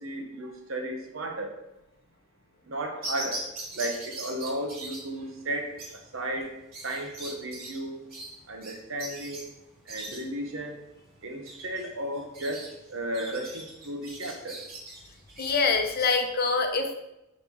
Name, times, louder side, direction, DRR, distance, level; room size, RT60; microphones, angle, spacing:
voice 1, 0.0-1.5 2.7-3.4 3.7-5.7 6.1-6.5 6.8-8.0 8.5-9.5 9.9-10.8 11.2-14.6, right 1 dB, 65° right, 3 dB, 1.0 m, -34 dB
sound 1, 3.0-16.1, right 2 dB, 45° right, 1.8 m, -41 dB
voice 2, 15.4-16.9, left 4 dB, 45° left, 5 dB, 0.7 m, -25 dB
4.7 x 4.1 x 5.4 m, 0.90 s
head